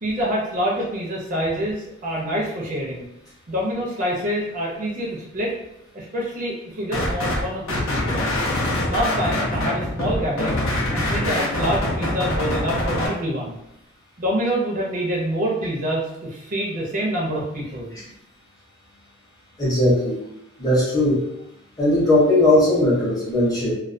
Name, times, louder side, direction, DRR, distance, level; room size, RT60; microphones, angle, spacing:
voice 1, 0.0-3.1 3.5-5.5 5.9-8.3 8.9-10.7 10.9-13.6 14.2-17.9, equal, 40° right, -3 dB, 0.5 m, -26 dB
sound 1, 6.9-7.4 7.7-13.1, left 1 dB, 80° left, 0.6 m, -24 dB
voice 2, 19.6-20.2 20.6-21.2 21.8-23.7, left 1 dB, 20° left, -6 dB, 0.7 m, -18 dB
2.2 x 2.2 x 2.4 m, 0.82 s
head